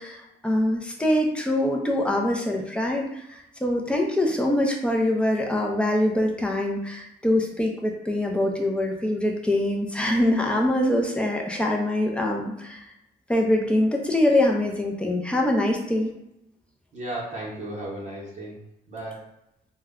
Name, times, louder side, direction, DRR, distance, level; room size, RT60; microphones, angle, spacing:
voice 1, 0.0-12.8 13.3-16.1, left 1 dB, 5° left, 0 dB, 0.5 m, -24 dB
voice 2, 16.9-18.6 18.9-19.2, right 1 dB, 45° right, -6 dB, 0.8 m, -34 dB
2.2 x 2.1 x 3.5 m, 0.84 s
cardioid pair, 125°, 18 cm